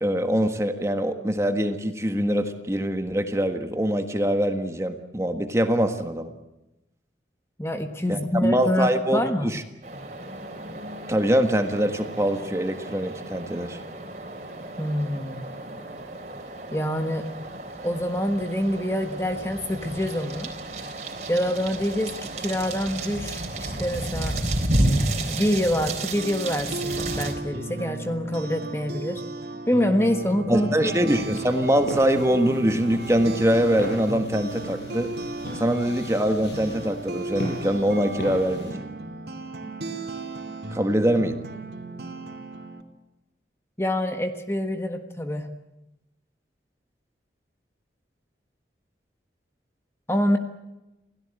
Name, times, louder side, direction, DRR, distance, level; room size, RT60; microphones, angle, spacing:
voice 1, 0.0-6.3 8.1-9.6 11.1-13.8 30.5-35.1 35.5-38.8 40.7-41.4, equal, 15° right, 6 dB, 1.5 m, -23 dB
voice 2, 7.6-9.5 14.8-15.4 16.7-17.3 17.8-20.5 21.3-24.3 25.3-29.2 29.7-31.3 43.8-45.5 50.1-50.4, left 1 dB, 15° left, 6 dB, 1.4 m, -26 dB
sound 1, 9.8-27.3, right 1 dB, 40° right, 3.9 m, -32 dB
sound 2, 25.9-42.8, right 2 dB, 65° right, 2.9 m, -36 dB
sound 3, 30.9-38.7, left 1 dB, 80° left, 7.6 m, -39 dB
27.5 x 17.0 x 8.9 m, 0.97 s
head